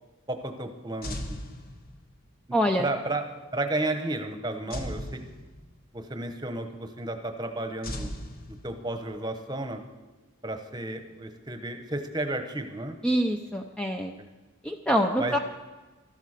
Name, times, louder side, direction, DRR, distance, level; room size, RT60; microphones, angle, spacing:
voice 1, 0.3-1.4 2.8-3.2 3.5-5.2 5.9-8.1 8.5-9.8 10.4-13.0 14.2-14.3 15.2-15.4, right 2 dB, 20° right, 7 dB, 1.1 m, -32 dB
sound 1, 1.0-2.3 4.7-6.0 7.8-9.1, left 1 dB, 45° left, 1.4 m, -38 dB
voice 2, 2.5-2.9 13.0-14.1 14.6-15.4, equal, 5° left, 4 dB, 0.5 m, -25 dB
13.5 x 11.5 x 6.6 m, 1.2 s
head